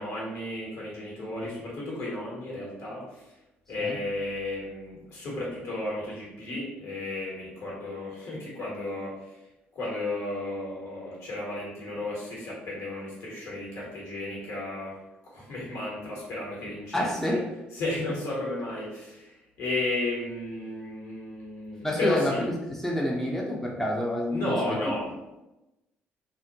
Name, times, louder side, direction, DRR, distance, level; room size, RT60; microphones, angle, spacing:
voice 1, 0.0-3.2 3.7-9.4 9.7-15.0 15.2-17.4 17.7-22.5 24.3-25.1, left 2 dB, 65° left, -5 dB, 1.1 m, -33 dB
voice 2, 16.9-17.4 21.8-22.3 22.6-24.8, left 1 dB, 5° left, -3 dB, 0.5 m, -28 dB
2.2 x 2.1 x 2.7 m, 0.98 s
hypercardioid pair, 50°, 6 cm